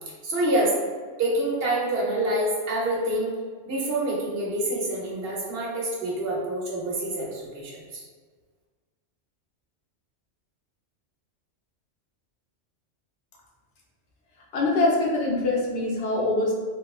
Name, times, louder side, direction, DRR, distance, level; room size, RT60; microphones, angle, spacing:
voice 1, 0.2-0.7 1.2-3.3 3.6-8.0, right 1 dB, 60° right, -4 dB, 0.9 m, -27 dB
voice 2, 14.5-16.5, left 2 dB, 75° left, -3 dB, 0.9 m, -23 dB
3.0 x 2.1 x 2.3 m, 1.5 s
omnidirectional pair, 1.2 m